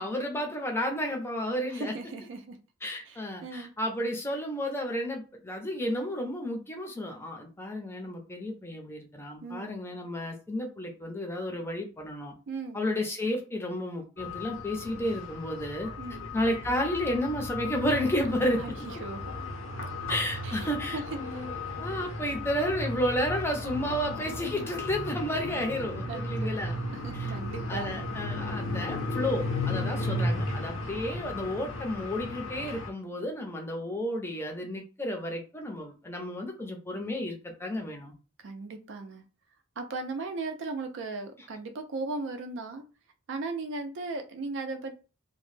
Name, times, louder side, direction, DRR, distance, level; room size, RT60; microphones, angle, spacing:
voice 1, 0.0-1.9 2.8-12.3 12.7-15.9 16.3-18.6 20.1-26.8 27.1-27.3 27.7-38.1, left 1 dB, 10° left, 2 dB, 0.5 m, -32 dB
voice 2, 1.7-2.6 3.1-3.7 9.4-9.7 12.5-12.8 15.1-15.2 16.0-16.2 18.6-18.7 19.0-19.4 20.4-20.7 20.9-21.0 26.1-26.5 26.9-27.9 29.7-30.1 38.4-39.2 39.8-42.8 43.3-45.0, right 3 dB, 65° right, 6 dB, 0.4 m, -37 dB
sound 1, 14.2-32.9, left 2 dB, 85° left, 0.7 m, -35 dB
2.1 x 2.0 x 3.1 m, 0.33 s
head